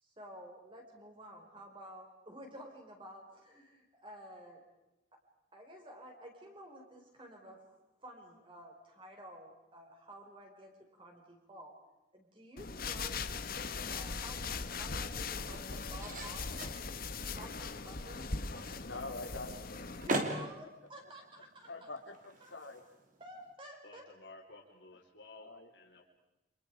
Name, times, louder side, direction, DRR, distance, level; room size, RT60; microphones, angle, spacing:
voice 1, 0.0-4.6 5.5-11.7 12.1-16.5 17.3-18.9 20.0-21.7 22.4-22.5 23.2-24.0, equal, 25° right, 2 dB, 5.7 m, -52 dB
sound 1, 12.6-20.1, left 4 dB, 50° left, 1.4 m, -40 dB
sound 2, 14.7-23.5, right 2 dB, 45° right, 3.1 m, -44 dB
voice 2, 18.6-19.9 21.7-22.8 25.4-25.7, left 2 dB, 90° left, 4 dB, 3.8 m, -45 dB
voice 3, 23.8-26.0, left 2 dB, 65° left, 0 dB, 4.2 m, -54 dB
30.0 x 27.0 x 5.2 m, 0.97 s
head